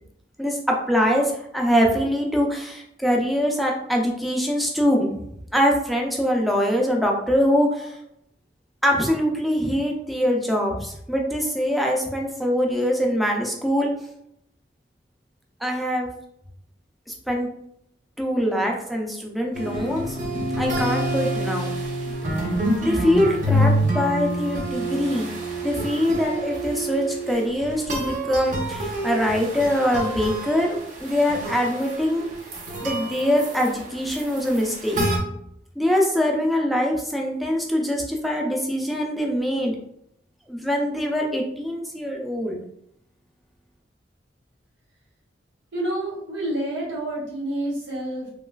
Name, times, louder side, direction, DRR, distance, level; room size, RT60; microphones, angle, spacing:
voice 1, 0.4-5.1 5.5-7.9 8.8-13.9 15.6-16.1 17.3-17.5 18.2-20.2 20.6-21.7 22.8-25.3 25.6-30.7 31.0-32.3 32.8-35.0 35.8-39.8 40.5-42.6, equal, ahead, -1 dB, 0.4 m, -23 dB
sound 1, 19.5-35.2, equal, 45° right, 0.6 m, -27 dB
voice 2, 45.7-48.3, right 1 dB, 75° right, -5 dB, 1.3 m, -28 dB
3.1 x 2.3 x 2.2 m, 0.75 s
head